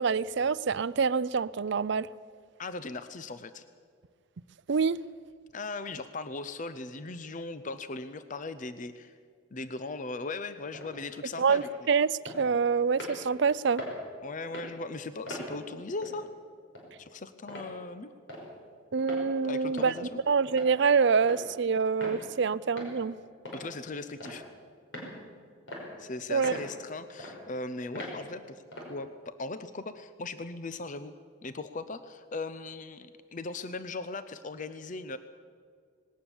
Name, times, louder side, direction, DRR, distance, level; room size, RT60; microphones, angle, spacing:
voice 1, 0.0-2.1 4.7-5.0 11.4-13.8 18.9-19.9 20.3-23.2 26.3-26.5, right 5 dB, 55° right, 18 dB, 0.5 m, -26 dB
voice 2, 2.6-3.6 5.5-9.2 9.5-11.7 14.2-16.3 17.0-18.1 19.4-20.2 23.5-24.4 26.0-28.6 28.9-31.1 31.4-35.2, left 3 dB, 40° left, 12 dB, 0.6 m, -38 dB
sound 1, 10.7-10.9 11.4-11.7 12.3-12.4 12.9-13.2 13.8-14.0 14.4-14.7 15.3-15.5 16.0-16.2 16.7-16.8 17.5-17.7 18.3-18.4 19.0-19.2 19.8-20.0 20.5-20.7 21.2-21.4 22.0-22.2 22.8-22.9 23.4-23.7 24.2-24.5 24.9-25.1 25.7-25.8 26.4-26.7 27.2-27.3 27.9-28.1 28.7-28.9, equal, 65° left, 5.7 m, -40 dB
19.5 x 18.5 x 7.2 m, 2.2 s
head